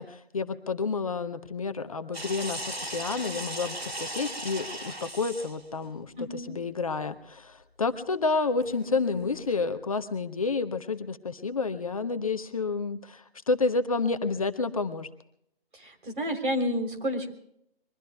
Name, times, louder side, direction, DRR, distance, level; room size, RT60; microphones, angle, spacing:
voice 1, 0.0-15.1, left 4 dB, 35° left, 9 dB, 0.8 m, -30 dB
sound 1, 2.1-5.6 8.6-9.5, right 1 dB, 85° right, 2.6 m, -37 dB
voice 2, 6.2-6.6 15.7-17.3, equal, 55° right, 4 dB, 3.7 m, -30 dB
27.0 x 22.5 x 2.3 m, 0.74 s
figure-of-eight pair, 150°, 30 cm